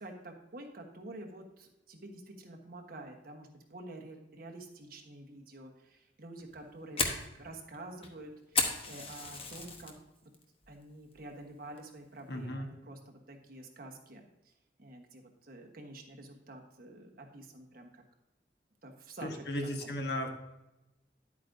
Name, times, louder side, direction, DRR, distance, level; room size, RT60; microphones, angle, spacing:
voice 1, 0.0-7.1 7.4-9.9 10.7-14.5 14.8-18.0 18.8-19.9, right 2 dB, 55° right, 2 dB, 1.2 m, -48 dB
Fire, 6.4-9.9 10.3-10.7 11.1-11.2 11.8-12.1, left 4 dB, 35° left, 1.0 m, -34 dB
voice 2, 12.3-12.7 19.2-20.3, left 1 dB, 65° left, 3 dB, 1.2 m, -35 dB
10.5 x 8.3 x 2.7 m, 0.95 s
head